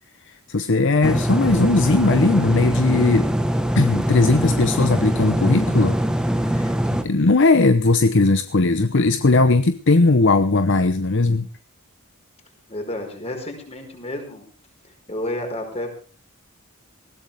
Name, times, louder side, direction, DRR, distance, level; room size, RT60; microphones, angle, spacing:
voice 1, 0.3-3.3 3.7-6.0 6.4-11.5, left 3 dB, 55° left, 10 dB, 0.9 m, -18 dB
sound 1, 1.0-7.0, equal, 5° right, 1.3 m, -22 dB
voice 2, 12.7-14.4 14.8-15.9, left 1 dB, 30° left, 3 dB, 4.9 m, -31 dB
20.0 x 16.0 x 3.5 m, 0.36 s
head